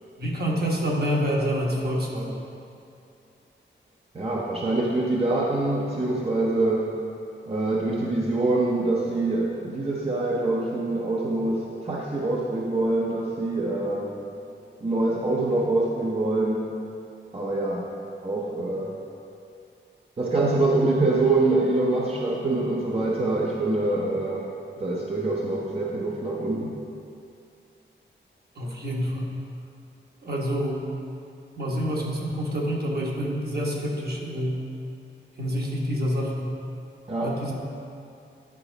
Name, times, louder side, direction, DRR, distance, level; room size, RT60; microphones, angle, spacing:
voice 1, 0.2-2.4 28.6-29.3 30.2-30.9 31.6-34.7 35.4-36.5 37.2-37.5, equal, 55° right, -3 dB, 1.3 m, -27 dB
voice 2, 4.1-6.9 7.5-14.2 14.8-16.7 17.3-17.9 18.2-19.0 20.2-24.5 24.8-26.7 37.1-37.4, right 2 dB, 30° right, -3 dB, 0.7 m, -25 dB
10.5 x 4.9 x 3.9 m, 2.6 s
wide cardioid pair, 130°, 20 cm